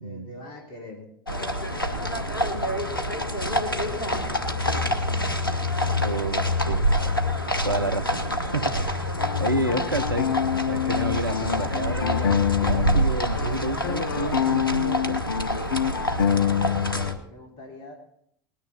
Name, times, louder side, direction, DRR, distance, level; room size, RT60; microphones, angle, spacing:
voice 1, 0.0-5.3 16.4-17.9, equal, 50° left, 1 dB, 3.2 m, -44 dB
sound 1, 1.3-17.1, left 1 dB, 90° left, 1.1 m, -26 dB
voice 2, 6.0-7.1 7.6-10.3 10.7-15.2, right 1 dB, 90° right, 10 dB, 0.8 m, -30 dB
sound 2, 9.2-13.1 13.3-17.2, left 9 dB, 70° left, 0.5 m, -26 dB
19.5 x 10.0 x 4.2 m, 0.66 s
figure-of-eight pair, 70°, 11 cm